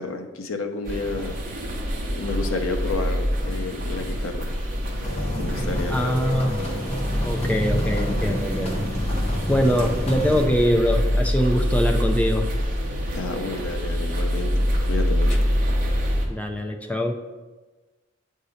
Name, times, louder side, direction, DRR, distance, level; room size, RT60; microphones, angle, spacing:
voice 1, 0.0-1.4 2.1-4.4 5.4-6.3 13.1-14.5 14.9-15.4, left 3 dB, 90° left, 5 dB, 0.7 m, -30 dB
sound 1, 0.8-16.3, equal, 45° right, 0.9 m, -25 dB
sound 2, 5.0-10.4, equal, 30° left, 0.9 m, -30 dB
voice 2, 5.9-6.5 7.2-8.8 9.5-12.5 16.3-17.1, equal, 5° left, 4 dB, 0.4 m, -23 dB
7.8 x 2.8 x 5.0 m, 1.2 s
head